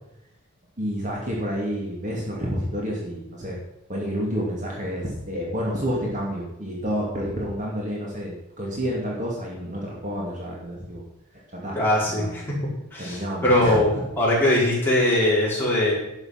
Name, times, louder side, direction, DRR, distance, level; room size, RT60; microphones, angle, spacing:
voice 1, 0.8-3.6 3.9-11.0 11.5-11.8 12.2-12.4 13.0-14.0, equal, 35° right, -3 dB, 2.5 m, -29 dB
voice 2, 11.7-12.4 12.9-15.9, left 1 dB, 10° left, -7 dB, 4.9 m, -21 dB
11.5 x 8.6 x 5.9 m, 0.87 s
head